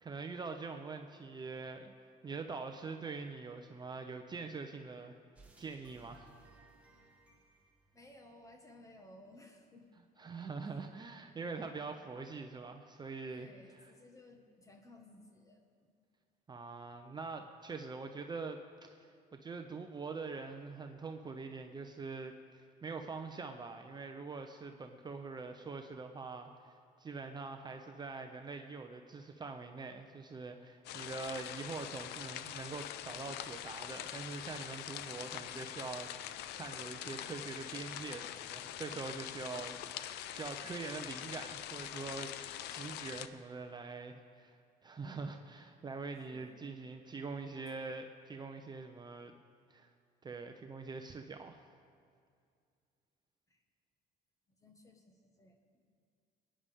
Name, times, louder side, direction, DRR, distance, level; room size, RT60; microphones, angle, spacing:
voice 1, 0.0-1.9 2.2-5.2 5.6-6.3 10.2-13.5 16.5-18.6 19.0-44.6 44.8-49.3 49.7-49.9 50.2-51.6, right 4 dB, 25° right, 5 dB, 0.7 m, -44 dB
sound 1, 5.3-8.8, right 3 dB, 10° right, 1.6 m, -62 dB
voice 2, 7.9-9.9 13.3-15.9 46.3-46.7 53.5-53.6 54.5-55.8, left 2 dB, 20° left, 3 dB, 1.6 m, -58 dB
sound 2, 30.8-43.3, left 11 dB, 80° left, 0.5 m, -44 dB
21.5 x 9.9 x 3.6 m, 2.3 s
cardioid pair, 110°, 17 cm